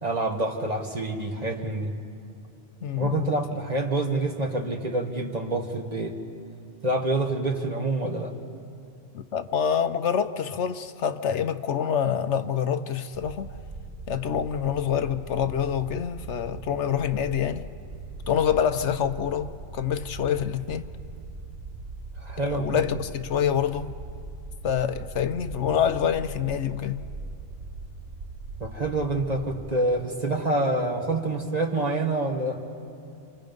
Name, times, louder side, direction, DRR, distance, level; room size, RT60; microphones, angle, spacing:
voice 1, 0.0-1.9 3.0-6.2 6.8-8.3 22.2-22.7 28.6-32.6, right 2 dB, 35° right, 1.8 m, -27 dB
voice 2, 2.8-3.3 9.1-13.5 14.1-17.7 18.3-20.9 22.4-24.0 24.6-27.0, left 8 dB, 75° left, 1.1 m, -26 dB
sound 1, 13.1-29.7, right 3 dB, 60° right, 1.4 m, -40 dB
28.0 x 27.0 x 5.3 m
omnidirectional pair, 1.2 m